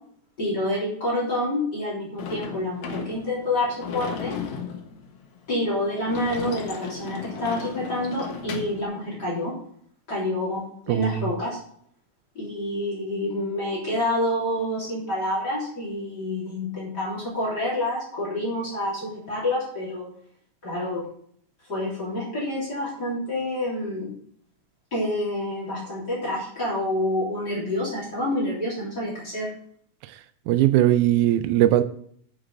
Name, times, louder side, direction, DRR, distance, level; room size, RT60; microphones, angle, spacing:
voice 1, 0.4-4.4 5.5-9.5 10.1-11.6 12.4-20.1 20.6-21.0 21.7-24.1 24.9-29.5, left 1 dB, 35° left, 4.0 m, -28 dB
Sliding door / Slam, 2.2-8.8, left 6 dB, 70° left, 2.7 m, -35 dB
voice 2, 10.9-11.3 30.5-31.8, right 13 dB, 80° right, 2.0 m, -19 dB
9.5 x 6.4 x 6.4 m
omnidirectional pair, 3.5 m